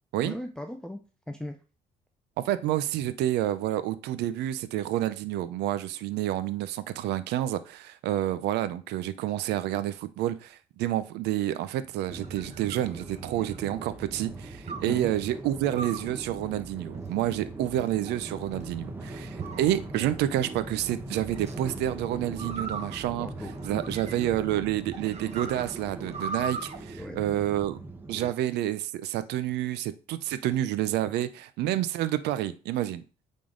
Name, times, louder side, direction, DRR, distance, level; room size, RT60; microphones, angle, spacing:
voice 1, 0.2-1.0 1.3-1.6 14.9-15.2 19.2-19.4 23.2-24.0 27.0-27.5, left 1 dB, 5° left, 4 dB, 0.6 m, -39 dB
voice 2, 2.4-23.3 23.6-27.8 28.1-33.0, right 13 dB, 80° right, 14 dB, 0.6 m, -29 dB
sound 1, 11.8-13.7 14.7-15.0 15.7-16.2 16.9-17.5 18.1-18.7 19.4-20.2 21.3-21.6 22.4-24.4 24.9-26.8, right 4 dB, 40° right, 1.0 m, -39 dB
sound 2, 12.1-28.3, right 2 dB, 10° right, 1.0 m, -41 dB
8.7 x 3.8 x 3.8 m, 0.36 s
cardioid pair, 110°, 17 cm